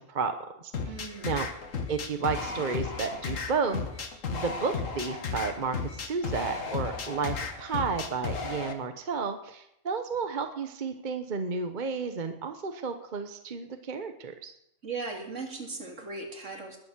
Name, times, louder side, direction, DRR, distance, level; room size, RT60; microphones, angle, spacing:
voice 1, 0.0-1.0 1.2-1.5 1.9-3.8 4.3-14.5, right 5 dB, 40° right, 7 dB, 1.1 m, -32 dB
sound 1, 0.7-8.7, left 5 dB, 85° left, 1.8 m, -34 dB
voice 2, 0.8-1.3 14.8-16.8, right 3 dB, 70° right, 3 dB, 2.7 m, -38 dB
20.0 x 7.0 x 7.3 m, 0.79 s
omnidirectional pair, 1.3 m